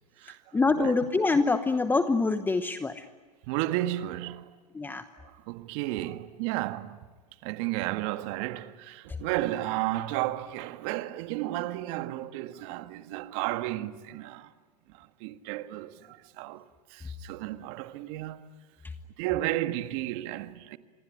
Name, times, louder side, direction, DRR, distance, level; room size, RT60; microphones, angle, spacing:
voice 1, 0.5-3.0 4.7-5.0, left 3 dB, 10° left, 1.0 m, -25 dB
voice 2, 3.5-4.5 5.2-7.1 7.4-14.5 14.9-16.7 16.9-18.5 19.2-20.8, right 15 dB, 50° right, 1.7 m, -33 dB
26.5 x 22.5 x 9.9 m
hypercardioid pair, 115°, 21 cm